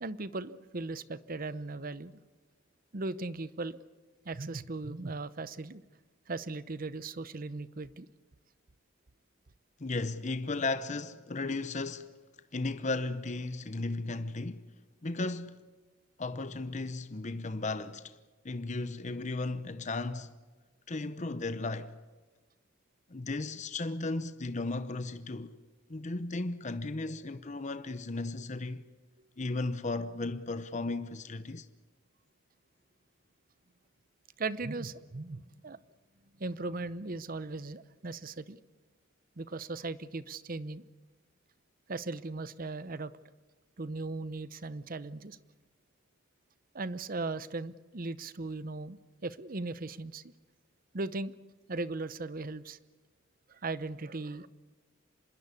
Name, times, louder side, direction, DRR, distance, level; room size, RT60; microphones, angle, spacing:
voice 1, 0.0-2.2 2.9-3.8 4.2-5.8 6.3-8.1 34.4-35.8 36.4-38.6 39.4-40.8 41.9-43.1 43.8-45.4 46.7-50.3 50.9-51.3 51.7-52.8 53.5-54.5, right 3 dB, 45° right, 0.8 m, -38 dB
voice 2, 9.8-12.1 12.5-14.6 15.0-15.6 16.2-18.1 18.4-20.3 20.9-21.9 23.1-25.5 25.9-28.8 29.4-31.7, left 2 dB, 40° left, 0.8 m, -35 dB
26.0 x 21.0 x 8.3 m
head